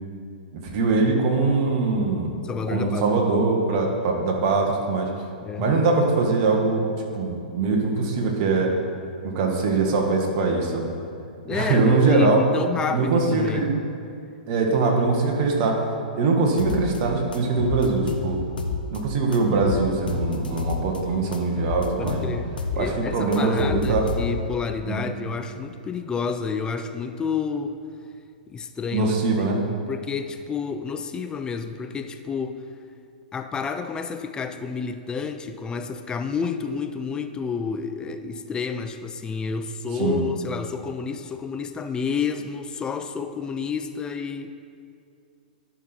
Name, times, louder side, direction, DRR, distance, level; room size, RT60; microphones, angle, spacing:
voice 1, 0.5-2.3 2.7-5.1 5.6-6.8 7.1-8.7 9.2-10.9 11.5-12.4 12.9-13.7 14.5-15.8 16.1-18.4 18.9-22.2 22.8-24.0 24.9-25.0 28.9-29.6 40.0-40.2, right 3 dB, 40° right, 1 dB, 1.6 m, -22 dB
voice 2, 2.4-3.2 5.4-5.7 11.4-13.7 22.0-27.8 28.5-32.6 33.3-44.5, left 5 dB, 15° left, 8 dB, 0.5 m, -30 dB
sound 1, 16.6-17.0 17.3-19.0 19.3-21.0 21.3-22.8 23.1-24.6, left 4 dB, 75° left, 0.9 m, -29 dB
11.5 x 5.7 x 4.5 m, 2.4 s
figure-of-eight pair, 110°, 5 cm